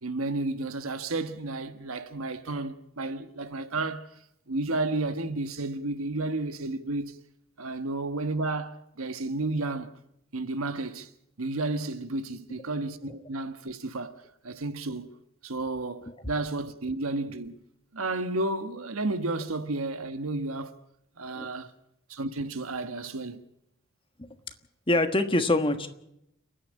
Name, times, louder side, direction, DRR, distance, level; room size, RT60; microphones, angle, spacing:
voice 1, 0.0-4.1 4.5-7.2 7.6-9.9 10.3-11.1 11.4-14.2 14.4-15.1 15.4-17.6 17.9-20.8 21.2-21.7 22.1-23.4, right 2 dB, 90° right, 1.3 m, -32 dB
voice 2, 24.9-25.9, left 2 dB, 25° left, 1.3 m, -24 dB
29.5 x 10.0 x 8.7 m
head